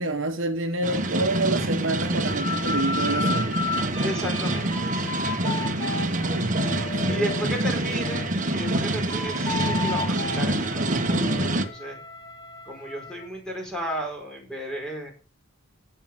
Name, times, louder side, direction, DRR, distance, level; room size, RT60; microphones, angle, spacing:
voice 1, 0.0-3.6 6.2-7.6 7.9-8.0, right 2 dB, 65° right, 1.4 m, -29 dB
sound 1, 0.8-11.6, right 1 dB, 40° right, 1.5 m, -26 dB
sound 2, 2.3-7.5 8.0-13.3, left 3 dB, 20° left, 2.1 m, -34 dB
voice 2, 4.0-6.1 7.0-12.0 12.6-15.1, right 1 dB, 5° left, 5.0 m, -34 dB
15.5 x 5.8 x 7.6 m
head